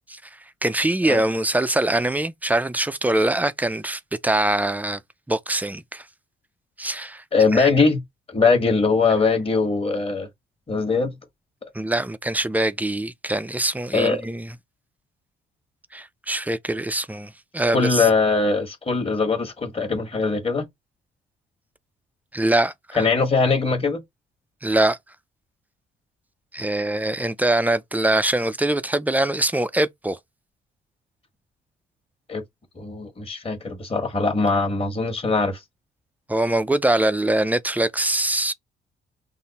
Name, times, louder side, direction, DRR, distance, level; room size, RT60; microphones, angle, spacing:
voice 1, 0.6-5.0 5.3-6.0 6.8-7.2 7.5-7.7 11.7-14.5 15.9-18.1 22.3-22.7 24.6-25.0 26.5-30.2 36.3-38.5, right 1 dB, 10° right, 0.4 m, -23 dB
voice 2, 7.3-8.0 8.3-10.3 10.7-11.1 13.9-14.2 17.7-20.6 22.9-24.0 32.3-32.4 32.7-35.6, left 4 dB, 30° left, 1.4 m, -21 dB
5.6 x 2.1 x 4.0 m
cardioid pair, 90°, 20 cm